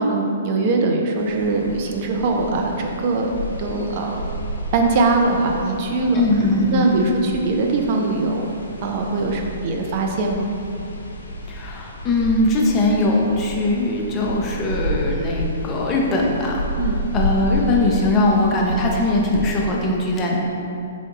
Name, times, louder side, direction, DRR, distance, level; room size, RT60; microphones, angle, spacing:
voice 1, 0.0-4.2 4.7-6.2 6.7-8.5 8.8-10.5 16.8-17.0, right 3 dB, 45° right, 1 dB, 0.4 m, -21 dB
sound 1, 1.2-19.7, equal, 85° left, 0.4 m, -31 dB
voice 2, 6.1-7.0 11.5-16.6 17.1-20.4, left 2 dB, 25° left, -1 dB, 0.5 m, -20 dB
3.9 x 3.4 x 2.4 m, 2.7 s
hypercardioid pair, 125°, 0 cm